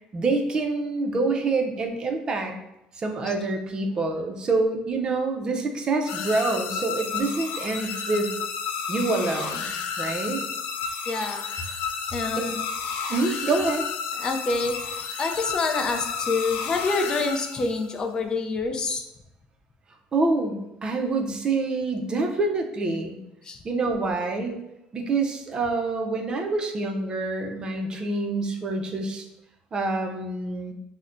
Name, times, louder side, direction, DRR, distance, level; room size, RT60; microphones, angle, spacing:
voice 1, 0.1-2.5 3.0-8.3 8.9-10.4 13.1-13.8 20.1-23.2 23.6-24.5 24.9-29.2 29.7-30.7, right 3 dB, 30° right, 3 dB, 0.5 m, -26 dB
sound 1, 6.1-17.9, left 6 dB, 90° left, 0.4 m, -32 dB
voice 2, 11.1-11.4 12.1-12.6 14.2-14.8 15.2-19.0 23.4-23.6, left 3 dB, 30° left, 4 dB, 0.4 m, -27 dB
5.6 x 2.1 x 2.5 m, 0.85 s
cardioid pair, 130°, 3 cm